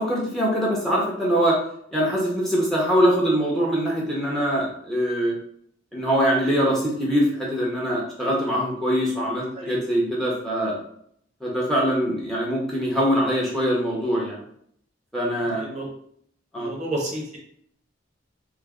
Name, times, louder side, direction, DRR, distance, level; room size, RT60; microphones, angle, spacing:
voice 1, 0.0-1.6 1.9-5.3 5.9-10.8 11.4-14.4 15.1-15.7 16.5-16.7, equal, ahead, -4 dB, 0.8 m, -23 dB
voice 2, 16.6-17.4, right 1 dB, 35° right, -2 dB, 0.8 m, -30 dB
3.2 x 2.2 x 3.6 m, 0.67 s
head